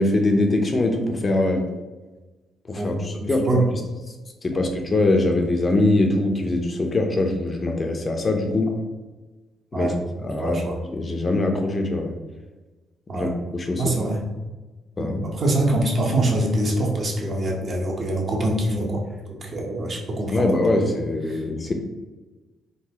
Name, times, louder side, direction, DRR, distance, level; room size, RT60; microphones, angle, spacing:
voice 1, 0.0-1.6 2.7-3.6 4.4-8.7 9.7-9.9 10.2-10.6 10.9-12.1 13.1-13.9 15.0-15.2 20.3-21.7, left 2 dB, 30° left, 4 dB, 0.5 m, -22 dB
voice 2, 3.2-3.6 9.7-10.0 10.4-10.8 13.1-13.3 13.8-14.2 15.0-20.9 21.3-21.4, right 1 dB, 45° right, -1 dB, 0.8 m, -24 dB
3.8 x 2.3 x 2.8 m, 1.2 s
cardioid pair, 90°, 0 cm